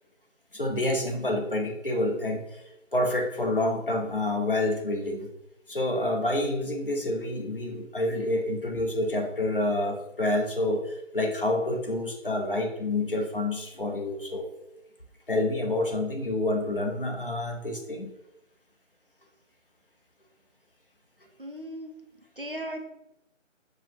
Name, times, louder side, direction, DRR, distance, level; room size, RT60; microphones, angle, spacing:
voice 1, 0.5-2.6 2.9-5.3 5.7-14.5 15.3-18.1, left 1 dB, 45° left, 2 dB, 0.6 m, -28 dB
voice 2, 21.4-21.9 22.4-22.9, right 1 dB, 45° right, 4 dB, 0.4 m, -36 dB
4.6 x 2.1 x 4.2 m, 0.87 s
figure-of-eight pair, 180°, 39 cm